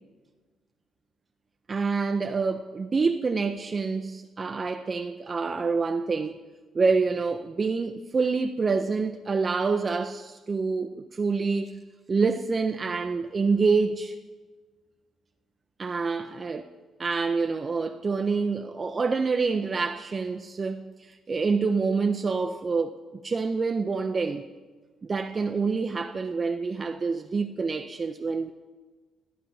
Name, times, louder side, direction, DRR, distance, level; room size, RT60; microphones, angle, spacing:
voice 1, 1.7-6.4 6.7-11.8 12.1-14.1 15.8-16.6 17.0-24.5 25.0-28.5, right 4 dB, 35° right, 0.4 m, -27 dB
14.0 x 8.6 x 2.7 m
cardioid pair, 90°, 0 cm